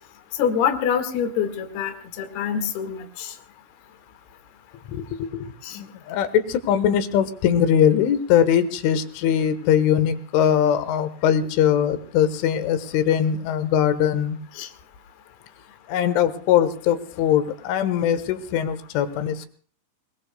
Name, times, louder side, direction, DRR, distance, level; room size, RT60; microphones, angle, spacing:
voice 1, 0.4-1.9 2.2-3.3 5.6-5.8 14.6-14.7, left 8 dB, 65° left, 6 dB, 3.5 m, -25 dB
voice 2, 4.9-14.4 15.9-19.5, left 9 dB, 90° left, 11 dB, 3.8 m, -21 dB
28.0 x 20.5 x 2.2 m, 0.43 s
omnidirectional pair, 5.4 m